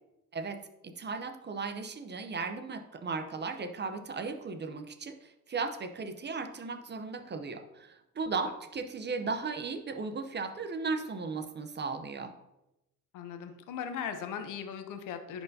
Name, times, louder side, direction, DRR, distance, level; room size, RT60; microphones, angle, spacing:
voice 1, 0.3-12.3, right 4 dB, 35° right, 8 dB, 0.7 m, -36 dB
voice 2, 13.1-15.4, left 7 dB, 90° left, 8 dB, 0.8 m, -38 dB
10.5 x 4.5 x 2.7 m, 0.91 s
cardioid pair, 90°, 30 cm